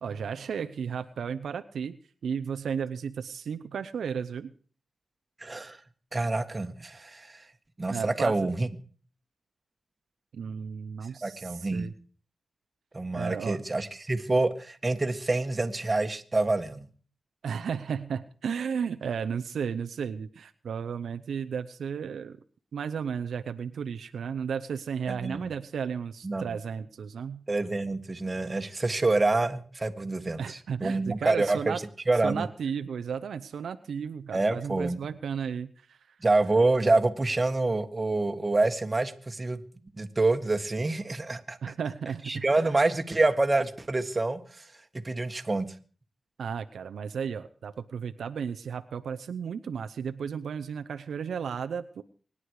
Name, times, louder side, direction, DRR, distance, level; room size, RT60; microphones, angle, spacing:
voice 1, 0.0-4.5 7.9-8.5 10.3-11.9 13.1-13.6 17.4-22.4 22.7-27.4 30.4-31.8 32.2-36.0 41.6-42.4 46.4-52.0, right 7 dB, 85° right, 9 dB, 0.7 m, -34 dB
voice 2, 5.4-5.8 6.1-7.4 7.8-8.7 11.2-11.9 12.9-16.9 25.1-25.5 26.2-26.5 27.5-31.8 32.1-32.5 34.3-35.1 36.2-39.6 40.0-41.6 42.3-44.4 45.0-45.7, right 2 dB, 30° right, 7 dB, 1.7 m, -27 dB
24.5 x 9.9 x 4.8 m, 0.41 s
cardioid pair, 65°, 0 cm